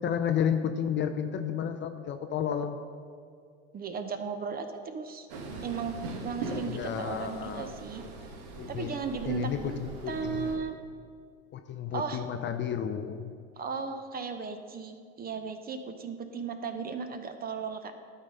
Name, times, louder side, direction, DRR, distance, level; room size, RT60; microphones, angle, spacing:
voice 1, 0.0-2.8 6.5-7.7 8.6-8.9 9.2-10.5 11.5-13.3, left 8 dB, 30° left, 7 dB, 0.5 m, -32 dB
voice 2, 3.7-5.3 5.6-6.0 6.2-8.0 8.7-9.8 10.1-10.7 11.9-12.2 13.6-17.9, right 5 dB, 25° right, 8 dB, 0.6 m, -35 dB
Train, 5.3-10.6, right 3 dB, 60° right, 1.4 m, -41 dB
12.0 x 4.1 x 5.4 m, 2.2 s
hypercardioid pair, 95°, 39 cm